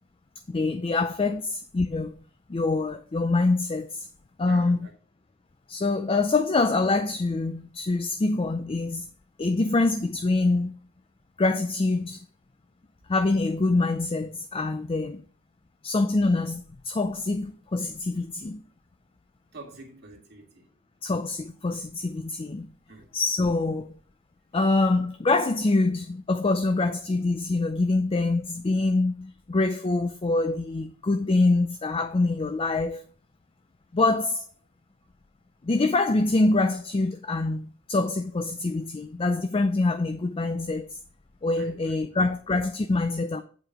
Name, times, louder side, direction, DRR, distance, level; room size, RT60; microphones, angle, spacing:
voice 1, 0.5-2.1 2.5-4.1 4.4-4.8 5.7-9.1 9.4-10.7 11.4-12.2 13.1-15.2 15.8-18.6 21.0-22.7 23.1-23.9 24.5-33.0 33.9-34.5 35.6-41.0 41.4-43.4, left 3 dB, 25° left, 0.4 m, -25 dB
voice 2, 4.5-4.9 19.5-20.7 22.9-23.1 41.6-42.2, right 3 dB, 55° right, 1.8 m, -47 dB
7.9 x 4.8 x 4.7 m
head